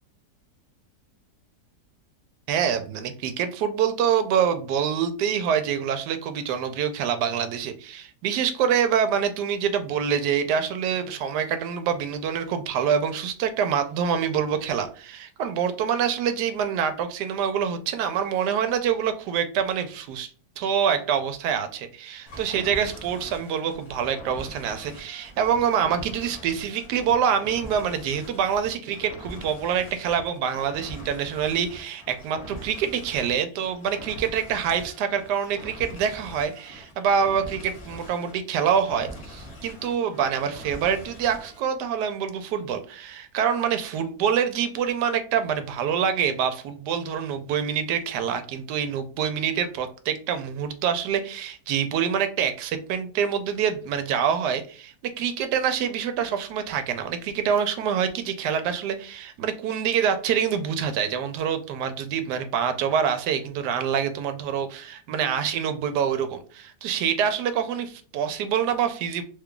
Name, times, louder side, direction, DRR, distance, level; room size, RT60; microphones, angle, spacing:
voice 1, 2.5-20.3 20.6-69.2, right 8 dB, 80° right, 9 dB, 1.1 m, -26 dB
sound 1, 22.3-41.6, equal, 45° left, 1.0 m, -43 dB
3.1 x 2.3 x 3.7 m, 0.40 s
omnidirectional pair, 1.8 m